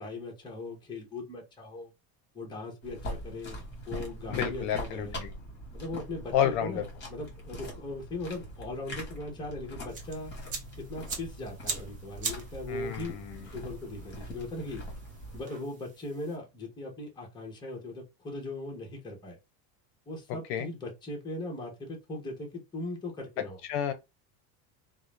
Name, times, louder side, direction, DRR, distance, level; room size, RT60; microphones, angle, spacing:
voice 1, 0.0-1.9 2.3-5.1 5.7-10.3 10.8-13.2 13.5-14.8 15.3-19.4 20.1-23.6, left 2 dB, 10° left, 0.6 m, -39 dB
sound 1, 2.8-15.4, equal, 25° left, 1.3 m, -42 dB
voice 2, 4.3-5.3 6.3-6.8 12.7-13.5 20.3-20.7 23.6-23.9, left 10 dB, 65° left, 0.6 m, -30 dB
sound 2, 9.9-16.4, right 5 dB, 20° right, 0.3 m, -42 dB
2.3 x 2.0 x 3.0 m
cardioid pair, 160°, 41 cm